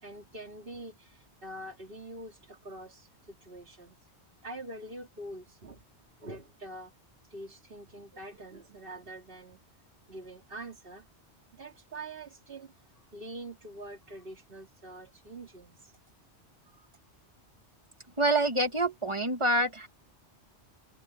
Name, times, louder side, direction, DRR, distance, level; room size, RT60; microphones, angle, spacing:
voice 1, 0.0-4.1 4.4-5.8 6.2-6.9 7.3-9.6 10.1-11.1 11.5-16.0 16.7-16.9, right 1 dB, 55° right, 2.8 m, -45 dB
voice 2, 18.2-19.9, right 2 dB, 25° right, 1.8 m, -26 dB
omnidirectional pair, 1.1 m